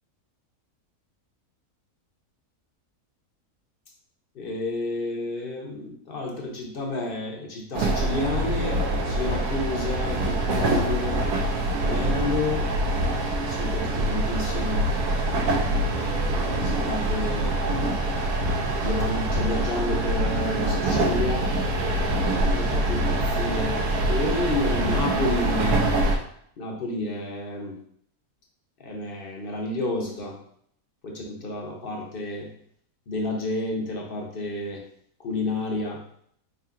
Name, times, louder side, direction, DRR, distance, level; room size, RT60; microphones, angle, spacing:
voice 1, 4.3-11.3 11.8-12.7 13.3-14.9 15.8-17.6 18.8-25.9 26.6-27.8 28.8-30.4 31.0-32.5 33.1-34.8 35.2-36.0, left 2 dB, 50° left, 0 dB, 0.7 m, -30 dB
sound 1, 7.7-26.2, right 1 dB, 85° right, 1.2 m, -25 dB
4.4 x 3.8 x 2.4 m, 0.65 s
omnidirectional pair, 1.6 m